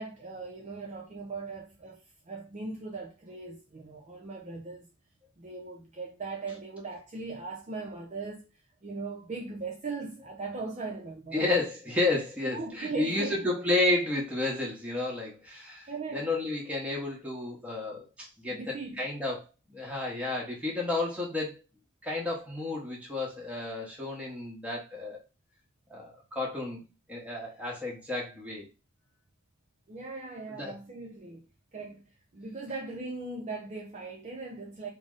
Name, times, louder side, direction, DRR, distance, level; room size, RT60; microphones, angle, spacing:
voice 1, 0.0-4.9 5.4-8.5 8.8-11.5 12.5-13.4 15.8-16.2 18.5-19.0 29.9-31.5 31.7-32.1 32.3-34.9, right 3 dB, 35° right, 0.5 m, -39 dB
voice 2, 11.3-21.6 22.0-25.2 25.9-26.8 27.1-28.7 30.5-30.8, left 2 dB, 5° right, 1.0 m, -31 dB
3.8 x 2.1 x 3.7 m
head